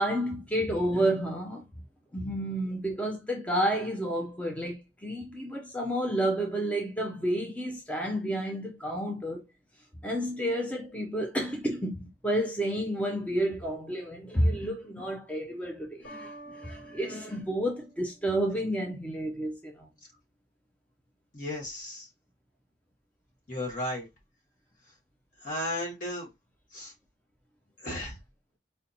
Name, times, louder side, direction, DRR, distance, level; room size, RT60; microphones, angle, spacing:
voice 1, 0.0-1.7 2.1-9.4 10.0-19.9, right 1 dB, 10° left, 0.4 m, -30 dB
sound 1, 16.0-18.9, right 1 dB, 90° left, 2.1 m, -49 dB
voice 2, 21.3-22.1 23.5-24.0 25.4-26.3 26.7-26.9 27.8-28.1, left 1 dB, 50° left, 1.7 m, -34 dB
4.2 x 2.7 x 2.7 m
head